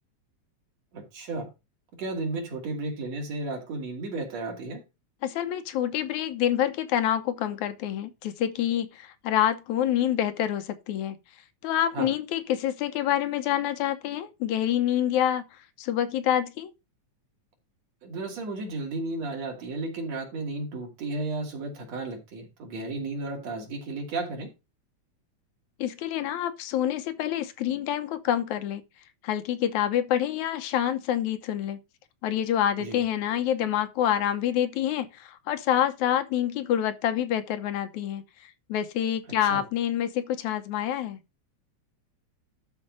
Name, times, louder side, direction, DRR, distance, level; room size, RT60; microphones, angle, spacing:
voice 1, 0.9-1.5 2.0-4.8 11.9-12.1 18.0-24.5 32.8-33.0 39.5-39.6, right 2 dB, 65° right, 3.8 m, -33 dB
voice 2, 5.2-11.2 11.6-15.4 15.8-16.7 25.8-28.8 29.2-31.8 32.2-38.2 38.7-41.2, left 11 dB, 85° left, 2.3 m, -27 dB
12.0 x 4.6 x 5.2 m
omnidirectional pair, 3.3 m